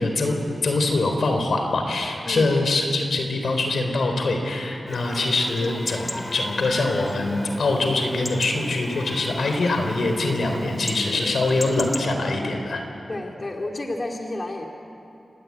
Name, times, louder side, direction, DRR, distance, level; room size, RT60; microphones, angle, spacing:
voice 1, 0.0-12.8, left 2 dB, 80° left, 4 dB, 3.9 m, -23 dB
voice 2, 2.2-2.6 13.1-14.7, left 1 dB, 35° left, 1 dB, 2.5 m, -31 dB
Chatter / Livestock farm animals working animals / Chirp tweet, 4.9-12.1, left 1 dB, 15° left, 2.1 m, -35 dB
28.5 x 20.5 x 8.7 m, 2.7 s
wide cardioid pair, 90°, 0 cm